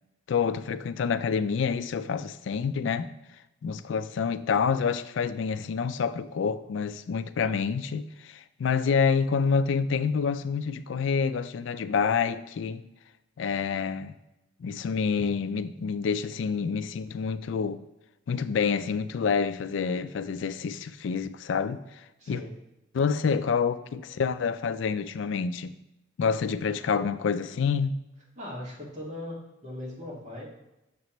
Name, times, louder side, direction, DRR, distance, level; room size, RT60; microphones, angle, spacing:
voice 1, 0.3-3.1 3.6-12.8 13.4-14.2 14.6-17.8 18.3-22.0 22.3-22.4 22.9-25.7 26.2-28.0, left 6 dB, 80° left, 0.3 m, -27 dB
voice 2, 22.2-22.5 28.4-30.5, left 1 dB, 35° right, 1.8 m, -39 dB
6.7 x 5.3 x 3.1 m
head